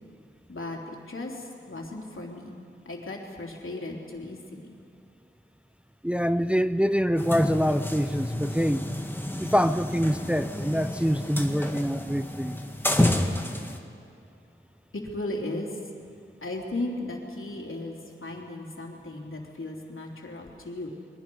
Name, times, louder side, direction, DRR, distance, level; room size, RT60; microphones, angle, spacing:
voice 1, 0.5-2.6 2.8-4.8 14.9-15.8 16.4-20.9, left 2 dB, 80° left, -1 dB, 3.4 m, -36 dB
voice 2, 6.0-8.9 9.4-12.6, equal, 5° right, 11 dB, 0.6 m, -25 dB
sound 1, 7.2-13.8, left 1 dB, 10° left, 1.8 m, -29 dB
29.5 x 23.0 x 5.5 m, 2.5 s
wide cardioid pair, 70°, 21 cm